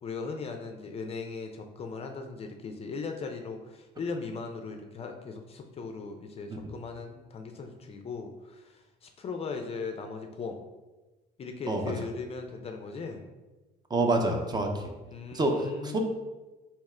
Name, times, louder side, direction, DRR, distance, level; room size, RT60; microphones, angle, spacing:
voice 1, 0.0-10.6 11.4-13.2 15.1-16.0, left 4 dB, 35° left, 5 dB, 0.4 m, -38 dB
voice 2, 13.9-14.8 15.3-16.0, right 2 dB, 25° right, 3 dB, 0.5 m, -27 dB
3.5 x 2.9 x 3.2 m, 1.2 s
cardioid pair, 110°, 17 cm